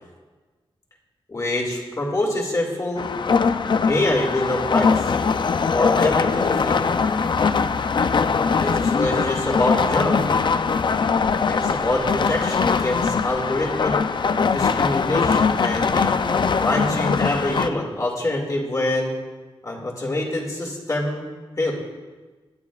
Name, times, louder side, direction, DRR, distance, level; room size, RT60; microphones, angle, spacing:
voice 1, 1.3-3.1 3.9-5.1 5.7-6.9 8.6-10.3 11.5-14.0 14.5-16.2 16.6-19.1 19.6-21.3 21.6-21.7, left 1 dB, 35° left, -1 dB, 2.3 m, -25 dB
sound 1, 3.0-17.7, left 5 dB, 55° left, 0.5 m, -21 dB
23.0 x 9.3 x 2.4 m, 1.3 s
wide cardioid pair, 110°, 10 cm